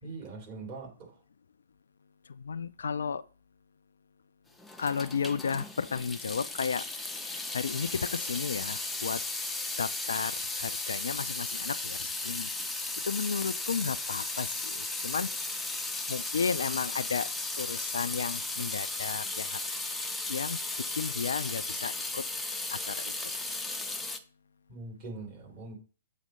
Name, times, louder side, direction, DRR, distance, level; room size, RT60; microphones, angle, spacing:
voice 1, 0.0-1.1 24.7-25.8, right 3 dB, 35° right, 3.2 m, -42 dB
voice 2, 2.3-3.2 4.8-6.8 7.2-9.2 9.8-12.5 13.0-15.3 16.1-17.3 17.6-19.6 20.3-20.6 21.0-22.2 22.7-23.1, left 6 dB, 70° left, 0.3 m, -33 dB
Water tap faucet / Sink (filling or washing) / Drip, 4.6-24.2, left 2 dB, 5° left, 0.6 m, -35 dB
7.4 x 3.3 x 5.3 m
figure-of-eight pair, 120°, 0 cm